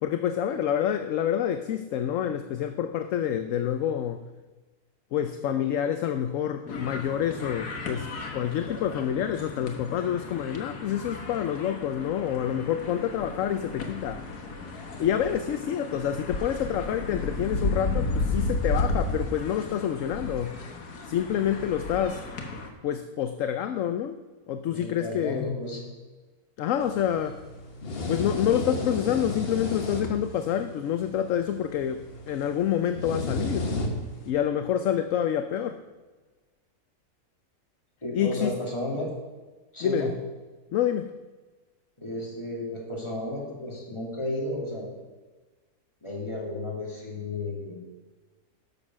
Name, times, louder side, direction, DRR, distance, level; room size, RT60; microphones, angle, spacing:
voice 1, 0.0-4.2 5.1-14.2 15.0-20.6 21.1-22.2 22.8-24.2 24.5-25.5 26.6-27.4 28.1-33.7 34.2-35.8 38.1-38.5 39.8-40.1 40.7-41.1, left 9 dB, 65° left, 9 dB, 0.9 m, -27 dB
sound 1, 6.7-22.7, left 2 dB, 90° left, 1.8 m, -33 dB
voice 2, 24.7-25.9 38.0-39.1 39.7-40.1 42.0-44.9 46.0-47.9, left 1 dB, 20° left, -3 dB, 2.7 m, -33 dB
sound 2, 26.8-34.3, left 2 dB, 40° left, 1.4 m, -34 dB
12.0 x 6.9 x 6.1 m, 1.3 s
omnidirectional pair, 1.6 m